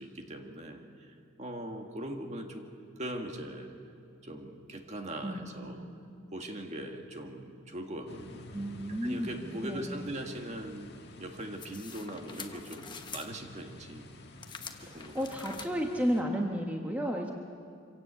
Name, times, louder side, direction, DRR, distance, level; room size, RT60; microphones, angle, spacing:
voice 1, 0.0-2.7 3.0-3.8 4.2-5.8 6.3-8.4 9.0-14.1 14.8-15.2, right 1 dB, 35° right, 3 dB, 1.9 m, -41 dB
voice 2, 5.2-5.9 8.5-9.3 9.6-10.0 14.8-17.3, equal, 10° right, 1 dB, 1.4 m, -33 dB
sound 1, 8.0-16.2, left 1 dB, 55° left, 1.7 m, -51 dB
sound 2, 11.6-13.3 14.4-15.7, left 5 dB, 20° left, 1.1 m, -45 dB
25.5 x 17.0 x 8.3 m, 2.4 s
head